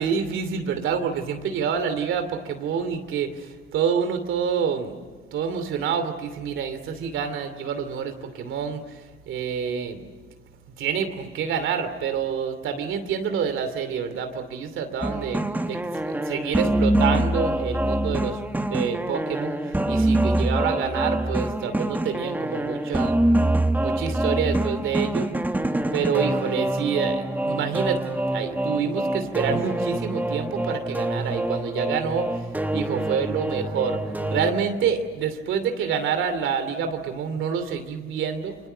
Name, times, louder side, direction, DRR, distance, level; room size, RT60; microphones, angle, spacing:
voice 1, 0.0-5.0 5.3-10.0 10.8-23.2 23.8-25.3 25.9-38.6, right 7 dB, 80° right, 9 dB, 2.8 m, -27 dB
sound 1, 15.0-34.5, right 1 dB, 10° right, 1.4 m, -25 dB
29.0 x 24.5 x 6.8 m, 1.4 s
cardioid pair, 90°, 20 cm